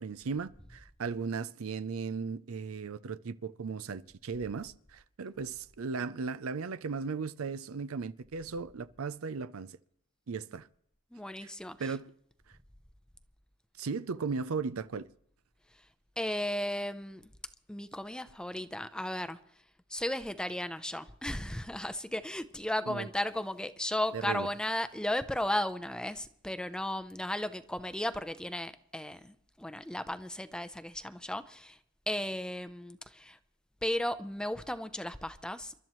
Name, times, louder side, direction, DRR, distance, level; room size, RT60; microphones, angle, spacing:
voice 1, 0.0-9.8 10.3-10.7 11.4-11.5 11.8-12.1 13.8-15.1 22.9-23.1 24.1-24.5, right 5 dB, 65° right, 0.5 m, -36 dB
voice 2, 11.1-11.9 16.2-17.3 17.7-19.4 19.9-31.8 32.1-33.4 33.8-35.7, left 1 dB, 5° left, 0.6 m, -35 dB
28.5 x 12.5 x 3.1 m
head